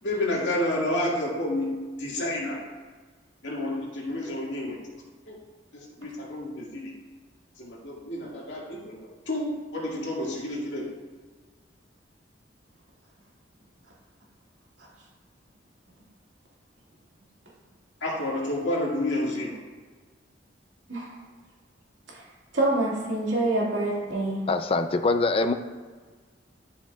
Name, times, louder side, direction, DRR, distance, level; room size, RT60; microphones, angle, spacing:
voice 1, 0.0-1.7 2.0-2.6 3.4-4.8 5.3-5.4 5.7-6.9 7.6-9.0 9.3-10.9 18.0-19.6, left 1 dB, 80° left, -4 dB, 2.0 m, -30 dB
voice 2, 22.5-24.5, right 2 dB, 80° right, -5 dB, 2.2 m, -26 dB
voice 3, 24.5-25.5, left 3 dB, 30° left, 8 dB, 0.4 m, -23 dB
11.5 x 5.7 x 2.4 m, 1.5 s
head